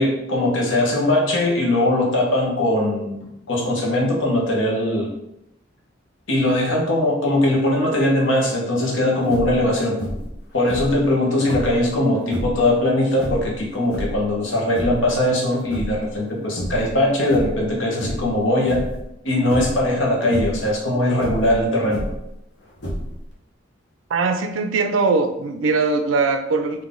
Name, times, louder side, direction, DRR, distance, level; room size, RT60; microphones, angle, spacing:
voice 1, 0.0-5.1 6.3-10.0 10.5-18.9 19.2-22.0, left 1 dB, 85° left, -1 dB, 1.1 m, -20 dB
sound 1, 9.2-9.6 10.0-10.4 10.6-11.8 12.2-12.6 13.1-14.3 14.6-15.1 15.5-16.3 16.6-16.9 17.2-17.6 18.0-18.3 18.6-19.0 19.5-19.8 20.2-20.6 21.1-22.3 22.8-23.3, equal, 60° left, 1.1 m, -29 dB
voice 2, 24.1-26.8, right 4 dB, 85° right, 7 dB, 0.4 m, -21 dB
3.8 x 2.7 x 3.7 m, 0.84 s
head